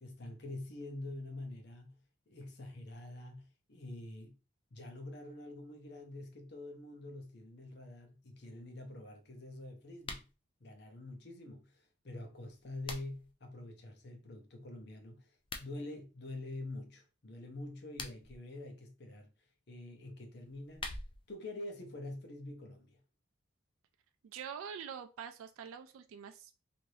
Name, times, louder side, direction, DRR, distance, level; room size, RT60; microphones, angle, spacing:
voice 1, 0.0-2.0 2.3-4.3 4.7-10.3 10.6-19.3 19.7-20.9 21.3-23.0, left 2 dB, 55° left, 0.7 m, -46 dB
sound 1, 10.0-10.3 12.4-13.3 15.3-15.7 17.7-18.4 20.4-21.4, left 3 dB, 25° left, 0.3 m, -45 dB
voice 2, 24.2-26.6, right 7 dB, 90° right, 0.3 m, -45 dB
3.1 x 2.6 x 2.7 m
head